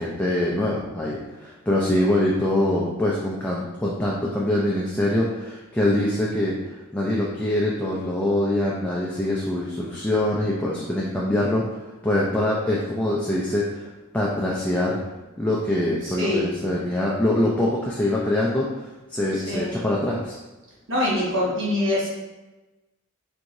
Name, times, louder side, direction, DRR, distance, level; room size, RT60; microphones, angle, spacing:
voice 1, 0.0-15.0 15.4-20.4, left 1 dB, 5° left, -5 dB, 0.4 m, -24 dB
voice 2, 16.0-16.8 19.3-19.7 20.9-22.1, left 1 dB, 60° right, -6 dB, 1.5 m, -25 dB
4.6 x 3.7 x 2.6 m, 1.1 s
head